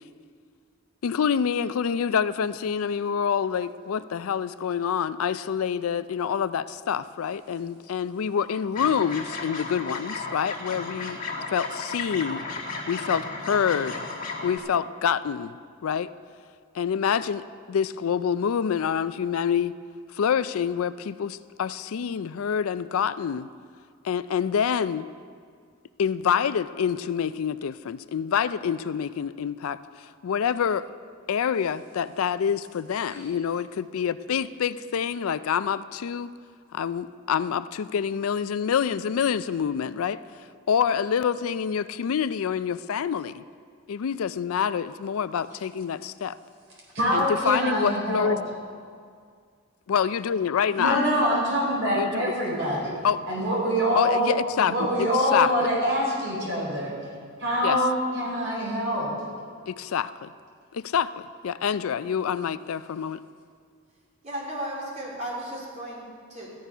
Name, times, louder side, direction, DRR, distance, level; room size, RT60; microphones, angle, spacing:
voice 1, 1.0-11.2 11.5-12.5 12.9-14.0 14.4-15.6 15.8-16.1 16.7-19.8 20.1-23.5 24.0-25.1 26.0-30.9 31.3-36.3 36.7-40.2 40.7-43.4 43.9-46.4 47.1-48.4 49.9-51.0 51.9-52.2 53.0-53.4 53.9-55.7 57.6-57.8 59.7-60.3 60.7-63.2, left 7 dB, 85° left, 14 dB, 0.4 m, -27 dB
sound 1, 8.7-14.6, left 3 dB, 40° left, 2.1 m, -34 dB
voice 2, 46.9-48.3 50.7-52.9 53.3-54.3 54.6-56.9 57.4-59.1, equal, 60° right, -3 dB, 4.2 m, -25 dB
voice 3, 64.2-66.0 66.3-66.5, right 1 dB, 35° right, -4 dB, 3.0 m, -34 dB
14.0 x 10.5 x 5.5 m, 2.1 s
head